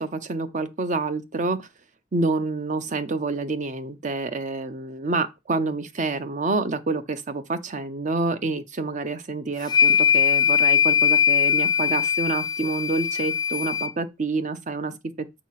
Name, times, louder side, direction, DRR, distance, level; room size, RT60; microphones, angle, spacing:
voice 1, 0.0-1.6 2.1-14.9, right 3 dB, 40° right, 0.7 m, -27 dB
sound 1, 9.6-13.9, left 8 dB, 20° left, 0.4 m, -21 dB
7.3 x 2.9 x 5.7 m
head